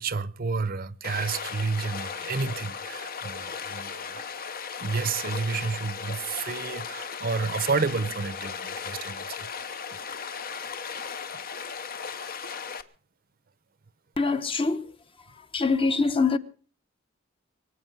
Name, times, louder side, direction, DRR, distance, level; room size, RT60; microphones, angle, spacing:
voice 1, 0.0-4.4 4.8-9.5, right 4 dB, 50° right, 0.7 m, -30 dB
Stream, 1.0-12.8, left 6 dB, 50° left, 0.9 m, -36 dB
voice 2, 14.2-14.9 15.5-16.4, left 4 dB, 30° left, 0.9 m, -24 dB
23.5 x 8.6 x 6.0 m
head